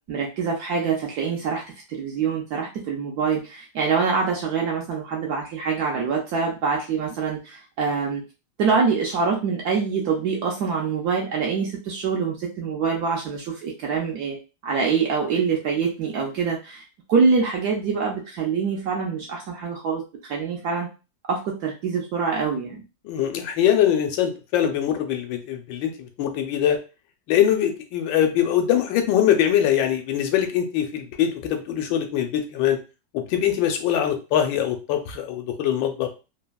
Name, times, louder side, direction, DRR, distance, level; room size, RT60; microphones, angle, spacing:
voice 1, 0.1-1.6 1.9-8.2 8.6-14.4 14.6-20.9 21.3-22.8, right 5 dB, 70° right, -1 dB, 0.9 m, -25 dB
voice 2, 23.0-26.8 27.3-32.8 33.1-36.1, left 10 dB, 80° left, 5 dB, 1.2 m, -22 dB
3.3 x 2.1 x 2.2 m, 0.31 s
omnidirectional pair, 2.0 m